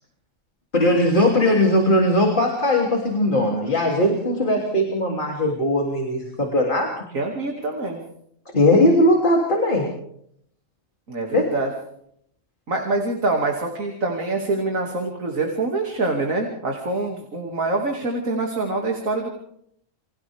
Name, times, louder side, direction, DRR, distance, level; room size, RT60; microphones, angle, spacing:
voice 1, 0.7-7.0 8.5-9.9 11.3-11.5, left 1 dB, 40° left, 0 dB, 3.3 m, -19 dB
voice 2, 7.1-8.0 11.1-11.7 12.7-19.3, right 2 dB, 90° right, 1 dB, 3.0 m, -25 dB
30.0 x 25.0 x 3.6 m, 0.72 s
omnidirectional pair, 1.3 m